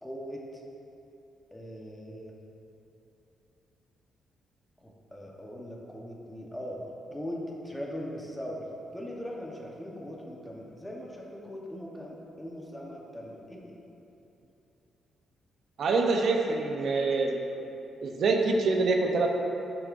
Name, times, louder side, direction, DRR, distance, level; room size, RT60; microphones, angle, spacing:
voice 1, 0.0-0.6 1.5-2.4 4.8-13.8, equal, 5° left, -2 dB, 0.9 m, -40 dB
voice 2, 15.8-17.4 18.0-19.3, right 3 dB, 60° right, 2 dB, 0.6 m, -25 dB
10.5 x 6.8 x 2.5 m, 2.8 s
cardioid pair, 135°, 0 cm